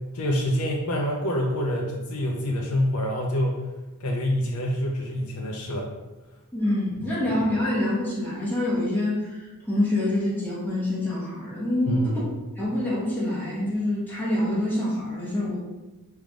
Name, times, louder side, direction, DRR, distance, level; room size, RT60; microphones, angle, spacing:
voice 1, 0.1-3.6 4.0-5.9 7.0-7.2 11.9-12.3, equal, 80° left, -1 dB, 0.6 m, -26 dB
voice 2, 6.5-9.4 9.7-12.1 12.6-15.6, left 1 dB, 10° left, -8 dB, 1.4 m, -26 dB
4.5 x 3.3 x 2.5 m, 1.1 s
head